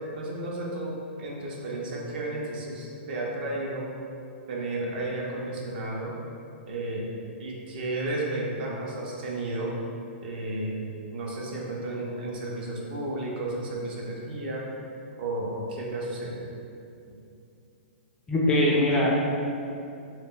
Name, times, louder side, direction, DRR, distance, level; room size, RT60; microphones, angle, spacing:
voice 1, 0.1-4.0 4.5-6.1 6.7-7.0 7.4-9.8 10.2-14.7 15.2-16.5, right 2 dB, 55° right, -3 dB, 0.5 m, -33 dB
voice 2, 18.3-19.1, left 1 dB, 15° left, -5 dB, 0.3 m, -21 dB
2.1 x 2.0 x 3.6 m, 2.6 s
hypercardioid pair, 145°, 6 cm